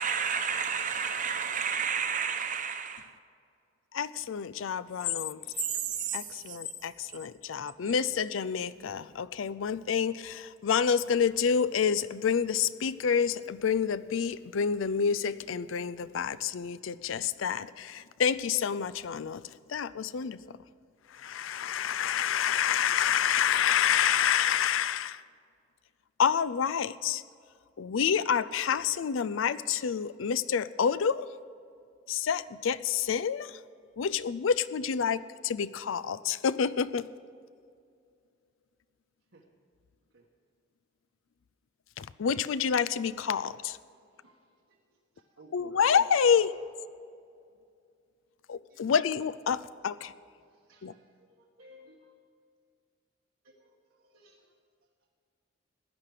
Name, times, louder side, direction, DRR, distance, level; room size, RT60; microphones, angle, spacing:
voice 1, 0.0-3.1 5.6-6.2 6.5-6.6, right 7 dB, 40° right, 0.9 m, -31 dB
voice 2, 3.9-5.4 6.1-19.4 19.7-20.6 21.1-25.2 26.2-27.2 27.8-31.3 32.1-33.6 34.0-37.1 42.0-43.8 45.5-46.5 48.5-50.1 50.8-50.9, left 7 dB, 90° left, 0.4 m, -28 dB
voice 3, 44.1-44.8 45.3-45.8 46.3-46.4 48.7-48.8 50.4-52.1 53.4-54.5, equal, 85° right, 1.4 m, -58 dB
16.5 x 10.5 x 5.0 m
head